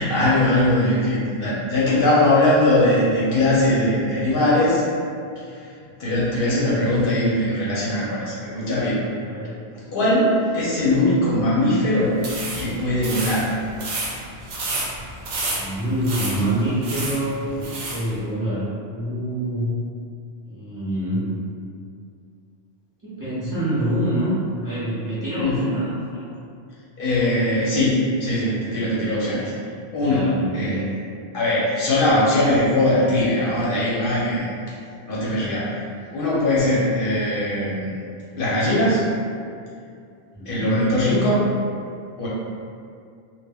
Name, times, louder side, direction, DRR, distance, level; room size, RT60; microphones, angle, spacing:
voice 1, 0.0-4.8 5.5-5.6 6.0-9.0 9.9-12.1 12.6-13.5 25.4-25.6 27.0-29.5 29.9-30.8 31.3-34.5 35.1-35.8 36.1-38.0 38.4-39.1 40.5-41.4 42.2-42.3, left 1 dB, 65° left, -7 dB, 0.7 m, -20 dB
voice 2, 9.3-9.6 15.5-19.7 20.4-21.3 23.0-24.4 24.6-26.1 29.3-29.5 30.0-30.8 40.3-40.8, right 1 dB, 20° right, -13 dB, 0.7 m, -26 dB
sound 1, 12.1-18.1, right 2 dB, 75° right, 0.8 m, -30 dB
2.2 x 2.1 x 3.4 m, 2.4 s
omnidirectional pair, 1.1 m